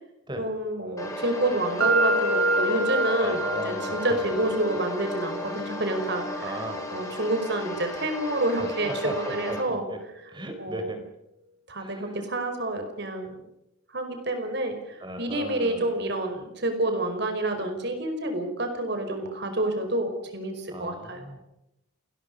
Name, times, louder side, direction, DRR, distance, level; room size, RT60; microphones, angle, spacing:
voice 1, 0.4-6.6 6.9-9.9 10.6-10.9 11.7-13.4 13.9-21.3, right 1 dB, 55° right, 6 dB, 5.1 m, -29 dB
sound 1, 1.0-9.6, left 1 dB, 15° left, 6.1 m, -35 dB
sound 2, 1.8-9.7, right 1 dB, 85° right, 5.0 m, -29 dB
voice 2, 3.2-4.2 6.4-6.8 8.6-10.0 10.3-11.0 11.8-12.1 15.0-15.9 20.7-21.4, right 1 dB, 20° right, 6 dB, 4.5 m, -37 dB
28.5 x 21.0 x 5.5 m, 0.85 s
head